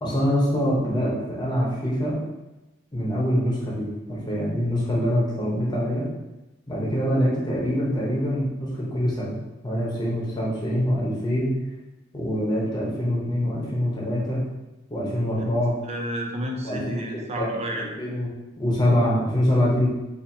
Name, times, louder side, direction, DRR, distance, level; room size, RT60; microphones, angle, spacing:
voice 1, 0.0-2.2 2.9-6.1 6.7-9.4 9.6-11.5 12.1-14.4 14.9-15.7 16.6-17.1 17.4-17.5 17.7-18.3 18.6-19.9, equal, 20° left, -5 dB, 1.0 m, -24 dB
voice 2, 15.8-17.9, equal, 35° right, 1 dB, 0.6 m, -30 dB
4.2 x 2.7 x 2.8 m, 1.0 s
head